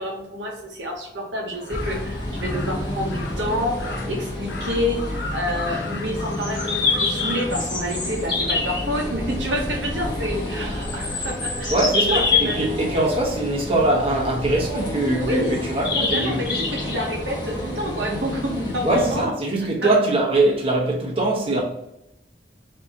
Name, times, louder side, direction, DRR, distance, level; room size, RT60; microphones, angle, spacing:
voice 1, 0.0-11.7 12.1-12.9 15.2-15.6 16.1-19.3 19.8-19.9, equal, 80° right, 0.9 m, -28 dB
Crow, 1.5-8.9, left 4 dB, 65° left, 0.6 m, -39 dB
sound 1, 1.7-19.2, left 3 dB, 25° left, 0.9 m, -27 dB
voice 2, 11.7-16.5 18.8-21.6, right 2 dB, 30° right, 1.1 m, -22 dB
4.0 x 2.8 x 3.7 m
head